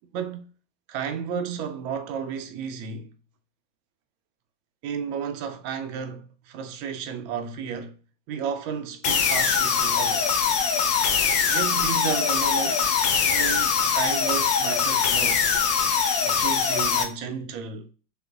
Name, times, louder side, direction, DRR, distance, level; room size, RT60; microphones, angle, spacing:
voice 1, 0.1-0.5 0.9-3.1 4.8-8.0 8.3-10.4 11.5-15.4 16.2-17.9, right 7 dB, 85° right, 1.4 m, -32 dB
sound 1, 9.0-17.0, left 6 dB, 75° left, 1.2 m, -22 dB
3.6 x 3.0 x 2.4 m
omnidirectional pair, 2.1 m